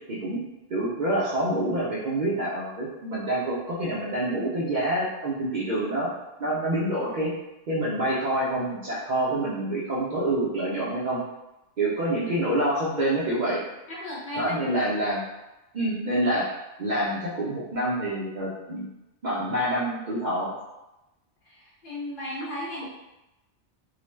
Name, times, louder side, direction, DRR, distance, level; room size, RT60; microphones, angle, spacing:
voice 1, 0.1-0.4 0.7-6.1 6.4-7.3 7.7-11.2 11.8-13.6 14.3-15.2 15.7-16.5 16.8-18.9 19.2-20.5, right 1 dB, 55° right, -8 dB, 0.6 m, -27 dB
voice 2, 13.9-14.5 21.5-22.8, left 1 dB, 55° left, -6 dB, 0.8 m, -35 dB
2.5 x 2.1 x 3.1 m, 0.97 s
omnidirectional pair, 1.2 m